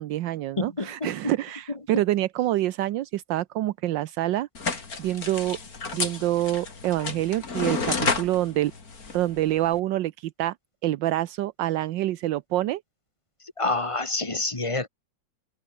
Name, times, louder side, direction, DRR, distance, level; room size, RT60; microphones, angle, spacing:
voice 1, 0.0-4.5 5.0-5.6 5.9-8.7 9.1-10.5 10.8-12.8, right 14 dB, 80° right, 1.4 m, -26 dB
voice 2, 0.6-1.3 1.9-2.0 13.6-14.9, left 2 dB, 15° left, 2.1 m, -28 dB
sound 1, 4.5-9.8, left 4 dB, 50° left, 3.3 m, -31 dB
open air
omnidirectional pair, 2.0 m